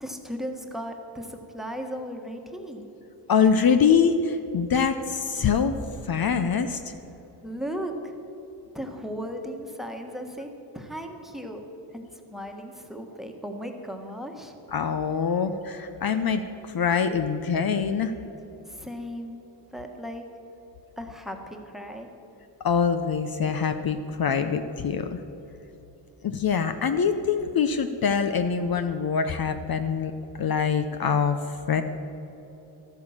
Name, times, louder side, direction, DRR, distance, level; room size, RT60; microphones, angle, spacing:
voice 1, 0.0-2.8 7.4-8.2 8.7-10.5 10.7-11.6 11.9-14.5 18.7-19.4 19.7-20.2 21.0-22.1, equal, ahead, 4 dB, 1.4 m, -36 dB
voice 2, 3.3-6.9 14.7-18.1 22.6-25.2 26.2-30.1 30.4-31.8, left 6 dB, 55° left, 8 dB, 0.7 m, -24 dB
13.5 x 9.3 x 7.3 m, 3.0 s
wide cardioid pair, 110°, 44 cm